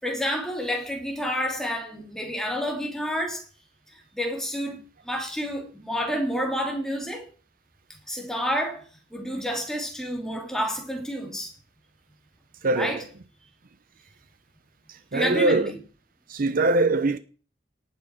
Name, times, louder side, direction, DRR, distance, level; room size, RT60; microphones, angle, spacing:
voice 1, 0.0-3.4 4.1-7.3 8.1-8.8 9.1-11.5 12.7-13.0 15.1-15.7, equal, 5° left, 3.1 m, -29 dB
voice 2, 12.6-13.0 14.9-15.7 16.3-17.2, right 2 dB, 50° right, 0.7 m, -23 dB
18.5 x 8.9 x 4.7 m
head